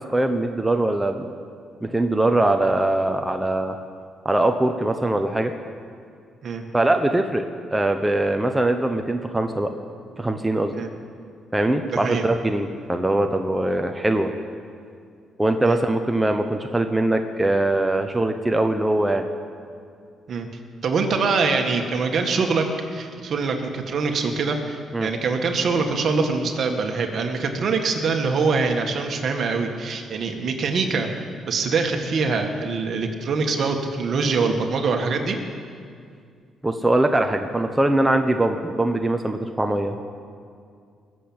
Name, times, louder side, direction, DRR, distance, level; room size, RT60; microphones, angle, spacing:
voice 1, 0.1-1.3 1.8-3.8 4.2-5.5 6.7-7.5 7.7-9.7 10.2-10.7 11.5-14.3 15.4-19.3 24.9-25.1 36.6-40.0, right 1 dB, 10° right, 5 dB, 1.0 m, -22 dB
voice 2, 11.9-12.3 15.7-15.8 20.3-20.5 20.8-22.6 22.9-31.1 31.4-35.4, right 4 dB, 55° right, 4 dB, 1.9 m, -24 dB
20.5 x 7.8 x 8.9 m, 2.3 s
cardioid pair, 90°, 0 cm